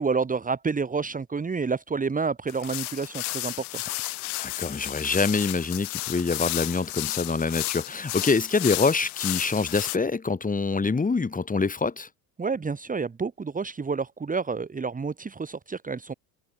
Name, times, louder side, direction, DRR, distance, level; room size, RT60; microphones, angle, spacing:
voice 1, 0.0-3.8 12.4-16.1, right 5 dB, 20° right, 2.4 m, -29 dB
sound 1, 2.5-10.0, left 20 dB, 85° left, 3.0 m, -33 dB
voice 2, 4.4-12.1, left 4 dB, 20° left, 6.7 m, -25 dB
supercardioid pair, 100°, 43 cm